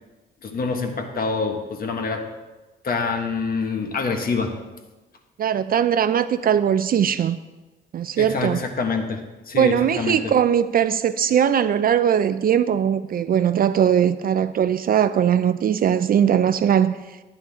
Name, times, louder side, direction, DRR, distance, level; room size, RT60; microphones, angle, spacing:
voice 1, 0.4-2.3 2.8-4.6 8.2-10.3, left 4 dB, 50° left, 1.4 m, -26 dB
voice 2, 5.4-7.4 7.9-8.6 9.5-17.0, right 9 dB, 45° right, 0.4 m, -20 dB
11.5 x 9.8 x 3.6 m
cardioid pair, 90°, 20 cm